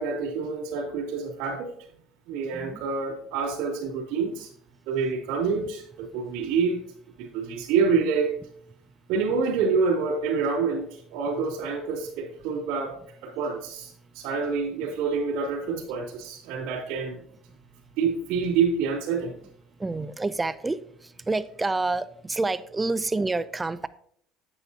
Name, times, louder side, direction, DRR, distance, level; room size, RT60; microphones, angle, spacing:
voice 1, 0.0-1.7 2.3-4.5 4.9-6.8 7.2-8.4 9.1-12.9 13.2-17.2 18.0-19.3, right 5 dB, 85° right, -1 dB, 2.7 m, -27 dB
voice 2, 2.5-2.8 19.8-20.8 21.3-23.9, right 3 dB, 10° right, 14 dB, 0.3 m, -28 dB
9.0 x 9.0 x 2.8 m, 0.63 s
cardioid pair, 180°, 0 cm